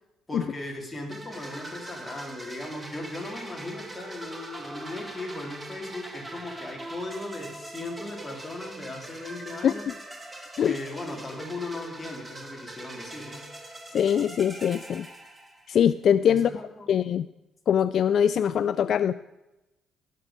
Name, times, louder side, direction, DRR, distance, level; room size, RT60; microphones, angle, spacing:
voice 1, 0.3-9.9 10.6-13.4 16.3-16.9, left 2 dB, 15° left, 0 dB, 3.1 m, -37 dB
sound 1, 1.1-15.9, right 1 dB, 15° right, 1.6 m, -42 dB
voice 2, 9.6-9.9 10.6-10.8 13.9-15.1 15.7-16.5 16.9-17.3 17.7-19.1, left 8 dB, 55° left, 15 dB, 0.3 m, -22 dB
17.5 x 6.8 x 5.1 m, 0.98 s
cardioid pair, 105°, 0 cm